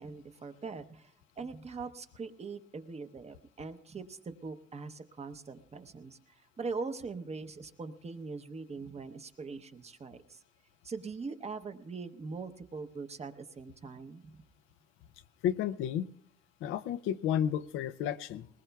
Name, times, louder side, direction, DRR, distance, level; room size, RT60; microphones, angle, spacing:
voice 1, 0.0-10.4 10.8-14.4, right 4 dB, 30° right, 9 dB, 0.9 m, -42 dB
voice 2, 15.4-16.0 16.6-18.5, left 10 dB, 90° left, 12 dB, 0.5 m, -32 dB
21.0 x 19.5 x 2.3 m, 0.69 s
cardioid pair, 90°, 20 cm